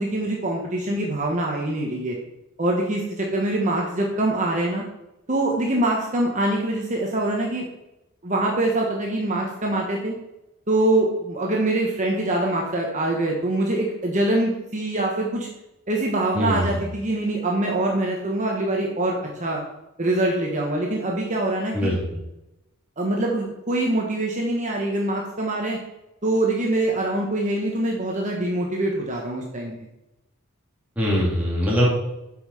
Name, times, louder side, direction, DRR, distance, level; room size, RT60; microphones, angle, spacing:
voice 1, 0.0-2.2 2.6-4.8 5.3-7.6 8.2-10.1 10.7-15.5 15.9-19.6 20.0-21.9 23.0-25.8 26.2-29.7, right 1 dB, 35° right, -1 dB, 1.2 m, -24 dB
voice 2, 16.3-16.8 21.7-22.0 31.0-31.9, equal, 5° right, -6 dB, 2.8 m, -22 dB
8.2 x 5.6 x 4.9 m, 0.92 s
head